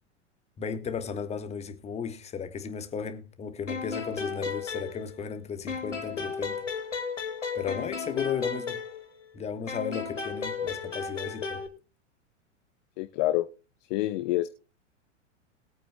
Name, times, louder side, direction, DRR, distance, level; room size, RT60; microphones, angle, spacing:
voice 1, 0.6-6.6 7.5-8.8 9.3-11.6, left 6 dB, 15° left, 1.4 m, -35 dB
sound 1, 3.7-5.4 5.7-9.3 9.7-11.7, left 5 dB, 75° left, 2.3 m, -34 dB
voice 2, 13.0-13.5 13.9-14.5, left 16 dB, 35° left, 0.7 m, -27 dB
20.5 x 8.8 x 2.3 m
figure-of-eight pair, 100°, 37 cm